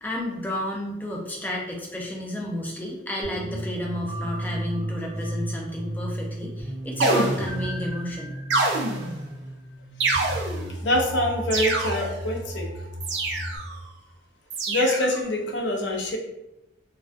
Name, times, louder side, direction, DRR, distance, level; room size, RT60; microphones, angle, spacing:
voice 1, 0.0-8.3, left 1 dB, 10° left, -2 dB, 0.4 m, -31 dB
sound 1, 3.2-13.6, equal, 35° right, 0.7 m, -34 dB
sound 2, 7.0-7.8 8.5-9.3 10.0-10.8 11.5-12.2 13.0-13.8 14.5-15.2, right 3 dB, 80° right, 0.4 m, -26 dB
voice 2, 10.8-12.7 14.7-16.2, left 1 dB, 90° left, 0 dB, 0.5 m, -25 dB
2.3 x 2.2 x 2.4 m, 0.92 s
head